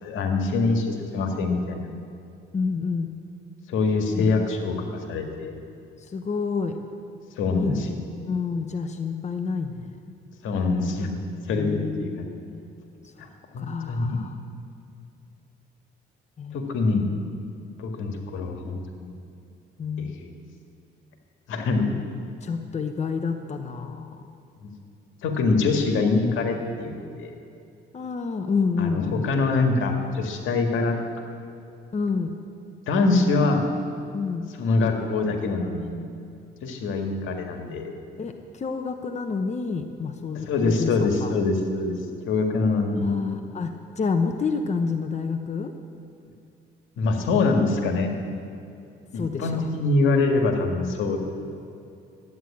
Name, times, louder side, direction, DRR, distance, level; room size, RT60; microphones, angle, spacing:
voice 1, 0.0-1.9 3.7-4.7 5.1-5.6 7.4-7.9 10.4-11.2 11.5-12.3 13.5-14.2 16.5-17.0 17.8-19.1 20.0-20.3 21.5-21.9 24.6-24.7 25.2-27.3 28.8-31.0 32.9-33.6 34.6-35.9 36.6-37.9 40.5-42.0 42.3-43.1 47.0-48.1 49.1-51.2, left 3 dB, 85° left, 4 dB, 1.8 m, -24 dB
voice 2, 2.5-3.2 4.1-4.6 6.0-6.8 7.5-7.9 8.3-10.0 11.5-12.7 13.6-14.4 16.4-16.7 19.8-20.2 21.9-22.0 22.4-24.2 27.9-29.3 31.9-32.3 34.1-34.5 38.2-41.3 43.0-45.7 49.1-49.7, left 5 dB, 35° left, 6 dB, 1.0 m, -29 dB
13.0 x 9.3 x 8.5 m, 2.6 s
cardioid pair, 90°, 20 cm